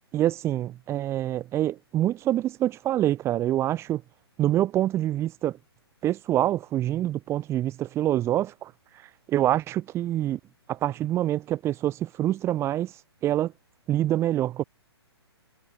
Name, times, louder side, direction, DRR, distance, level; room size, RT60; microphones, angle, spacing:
voice 1, 0.1-4.0 4.4-5.6 6.0-8.7 9.3-10.4 10.7-12.9 13.2-13.5 13.9-14.6, right 13 dB, 20° right, 4.3 m, -26 dB
figure-of-eight pair, 125°, 14 cm